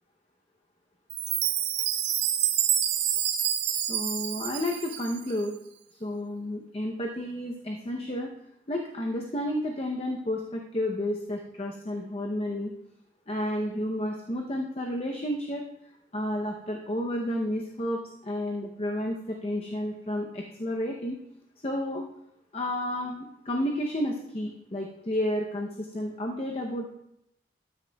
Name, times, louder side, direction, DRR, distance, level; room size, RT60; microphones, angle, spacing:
Chime, 1.1-5.3, right 10 dB, 80° right, 0.8 m, -28 dB
voice 1, 3.7-5.6 6.0-8.3 8.7-12.7 13.3-15.6 16.1-21.2 21.6-22.0 22.5-26.9, left 1 dB, 35° left, 1 dB, 0.6 m, -31 dB
13.0 x 9.5 x 2.2 m, 0.80 s
head